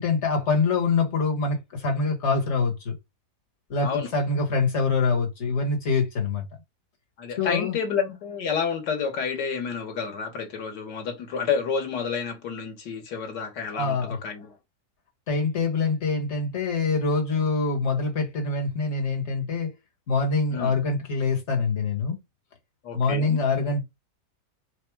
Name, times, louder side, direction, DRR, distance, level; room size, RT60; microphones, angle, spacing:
voice 1, 0.0-2.9 3.7-6.4 7.4-7.7 13.7-14.2 15.3-19.7 20.1-22.2 22.9-23.8, left 4 dB, 45° left, 1.6 m, -25 dB
voice 2, 7.2-14.6 20.5-20.7 22.8-23.4, left 6 dB, 85° left, 1.9 m, -29 dB
4.7 x 2.3 x 4.6 m
omnidirectional pair, 1.8 m